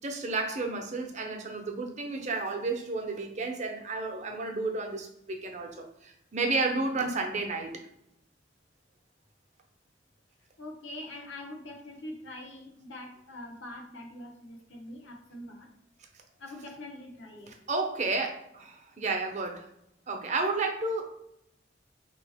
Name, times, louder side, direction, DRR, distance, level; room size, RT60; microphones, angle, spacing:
voice 1, 0.0-7.8 17.5-19.7 20.1-21.0, right 3 dB, 40° right, 3 dB, 0.7 m, -32 dB
voice 2, 10.6-15.7 16.4-17.5, left 1 dB, 90° left, 1 dB, 1.0 m, -44 dB
4.3 x 3.0 x 3.4 m, 0.77 s
head